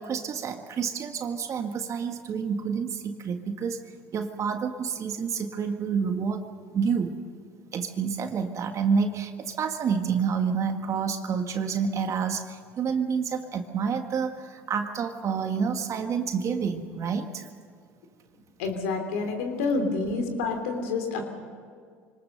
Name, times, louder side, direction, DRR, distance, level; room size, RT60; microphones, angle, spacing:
voice 1, 0.0-3.8 4.1-6.5 6.7-7.2 7.7-17.5, right 6 dB, 45° right, 6 dB, 1.7 m, -28 dB
voice 2, 18.6-21.2, left 3 dB, 80° left, 5 dB, 3.2 m, -28 dB
25.0 x 19.5 x 6.7 m, 2.1 s
hypercardioid pair, 75°, 7 cm